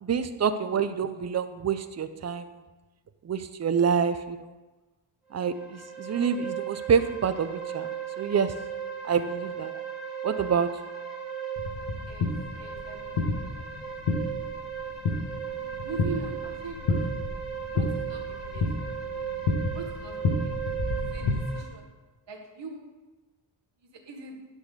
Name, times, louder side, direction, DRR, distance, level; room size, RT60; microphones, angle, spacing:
voice 1, 0.0-2.4 3.2-4.5 5.3-7.9 8.2-8.5 9.0-9.8 10.2-10.7, right 7 dB, 35° right, 11 dB, 0.5 m, -27 dB
sound 1, 5.3-21.6, right 8 dB, ahead, 2.0 m, -37 dB
sound 2, 11.6-21.4, left 3 dB, 90° left, 1.5 m, -31 dB
voice 2, 12.1-13.7 15.5-17.2 17.7-18.2 18.5-19.2 19.7-20.5 21.0-21.9 22.3-22.8 23.8-24.4, right 4 dB, 65° right, 2 dB, 1.5 m, -42 dB
11.0 x 4.1 x 6.7 m, 1.2 s
wide cardioid pair, 170°, 46 cm